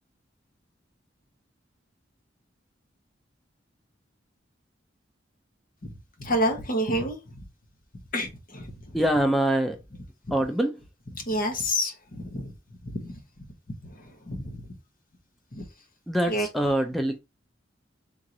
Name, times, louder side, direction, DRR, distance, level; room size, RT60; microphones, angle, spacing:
voice 1, 6.2-7.4 8.1-9.0 11.1-12.5 12.8-13.2 13.8-14.7 15.5-15.7 16.3-16.5, equal, 50° left, 1.3 m, -29 dB
voice 2, 8.9-9.8 10.3-10.8 16.1-17.2, right 1 dB, ahead, 0.4 m, -24 dB
3.7 x 3.1 x 3.9 m
head